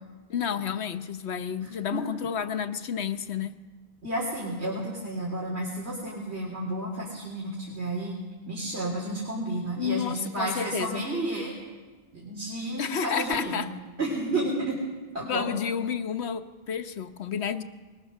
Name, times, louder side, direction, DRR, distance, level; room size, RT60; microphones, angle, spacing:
voice 1, 0.3-3.6 9.8-11.0 12.8-13.7 15.2-17.6, left 7 dB, 75° left, 9 dB, 1.2 m, -30 dB
voice 2, 1.6-2.1 4.0-8.2 8.5-11.5 12.1-13.7 14.0-14.8 15.1-15.5, right 1 dB, 70° right, -4 dB, 3.8 m, -31 dB
21.0 x 21.0 x 6.5 m, 1.3 s
omnidirectional pair, 1.1 m